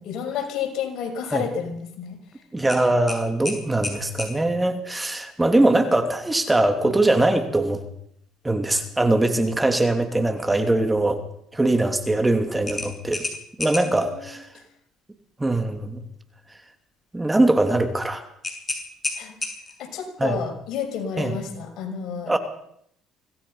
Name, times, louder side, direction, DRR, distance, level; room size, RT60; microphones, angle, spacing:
voice 1, 0.0-2.2 6.8-6.9 13.8-14.4 19.2-19.4 19.8-22.4, left 7 dB, 65° left, 4 dB, 6.1 m, -31 dB
voice 2, 2.5-7.8 8.4-11.2 11.5-13.2 13.6-14.5 15.4-16.0 17.1-18.3 20.2-20.4 21.2-21.4 22.3-22.4, right 2 dB, 10° right, 6 dB, 3.0 m, -21 dB
sound 1, 2.7-4.4 7.0-7.2 7.6-7.7 12.7-14.0 18.4-19.9, left 2 dB, 20° left, 7.3 m, -31 dB
25.5 x 18.5 x 5.7 m, 0.70 s
supercardioid pair, 85°, 0 cm